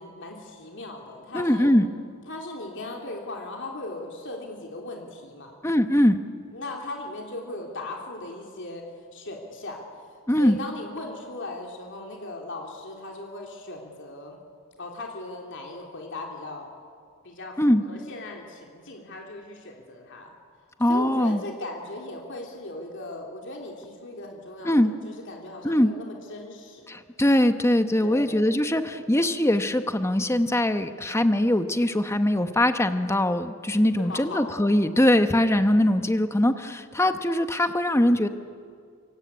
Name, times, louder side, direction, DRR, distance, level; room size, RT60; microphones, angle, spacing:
voice 1, 0.0-1.7 2.3-5.5 6.5-8.8 9.1-9.8 10.3-14.4 14.8-16.7 17.2-20.3 20.9-26.9 28.0-28.4 34.0-34.5 35.1-35.4, left 2 dB, 55° left, 0 dB, 3.2 m, -38 dB
voice 2, 1.3-1.9 5.6-6.2 10.3-10.6 17.6-17.8 20.8-21.4 24.6-24.9 25.6-25.9 26.9-38.3, left 1 dB, 10° left, 8 dB, 1.0 m, -22 dB
27.5 x 24.5 x 8.7 m, 2.2 s
head